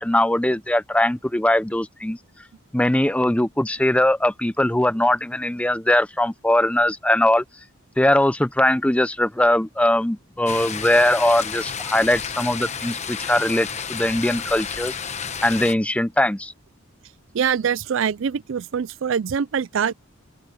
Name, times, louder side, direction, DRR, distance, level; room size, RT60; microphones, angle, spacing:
voice 1, 0.0-2.2 2.7-7.4 8.0-14.9 15.4-16.5, left 1 dB, 5° left, 0.6 m, -20 dB
sound 1, 10.5-15.7, left 7 dB, 35° left, 1.0 m, -31 dB
voice 2, 17.3-19.9, right 7 dB, 60° right, 0.4 m, -24 dB
open air
head